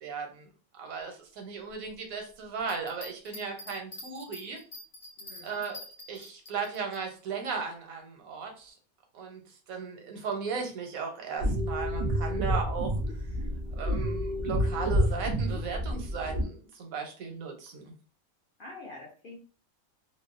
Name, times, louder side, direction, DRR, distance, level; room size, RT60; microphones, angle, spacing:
voice 1, 0.0-0.5 0.7-4.6 5.4-5.8 6.1-8.8 9.1-9.4 9.7-13.0 13.8-17.9, right 5 dB, 90° right, 3 dB, 1.1 m, -36 dB
sound 1, 2.6-7.0, left 1 dB, 40° left, 1.0 m, -46 dB
voice 2, 5.2-5.6 18.6-19.4, left 2 dB, 65° left, -2 dB, 0.5 m, -46 dB
sound 2, 11.4-16.4, equal, 60° right, 0.4 m, -29 dB
2.6 x 2.0 x 2.4 m, 0.39 s
omnidirectional pair, 1.4 m